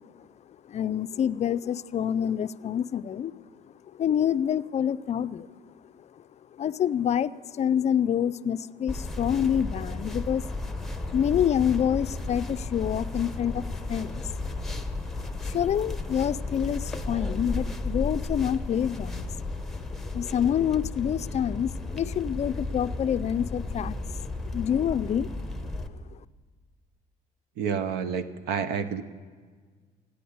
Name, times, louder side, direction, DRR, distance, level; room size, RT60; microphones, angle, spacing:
voice 1, 0.7-3.3 3.9-5.5 6.6-10.5 11.1-14.2 15.4-19.3 20.1-24.1 24.5-25.3, left 9 dB, 40° left, 14 dB, 0.4 m, -27 dB
sound 1, 8.9-25.9, left 2 dB, ahead, 0.9 m, -34 dB
voice 2, 27.6-29.0, right 6 dB, 80° right, 12 dB, 0.9 m, -29 dB
14.5 x 10.0 x 8.5 m, 1.5 s
cardioid pair, 110°, 17 cm